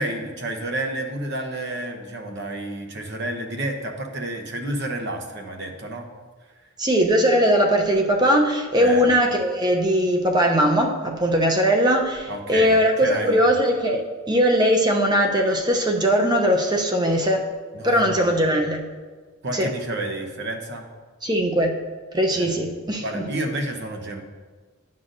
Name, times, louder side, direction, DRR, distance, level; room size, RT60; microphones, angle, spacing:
voice 1, 0.0-6.1 8.8-9.1 12.3-13.5 17.7-18.3 19.4-20.9 22.3-22.5 23.0-24.2, right 1 dB, 55° right, 4 dB, 0.9 m, -30 dB
voice 2, 6.8-17.4 17.8-18.8 19.5-19.7 21.2-21.7 22.1-23.2, equal, 20° right, 2 dB, 0.6 m, -20 dB
11.0 x 5.7 x 2.6 m, 1.5 s
head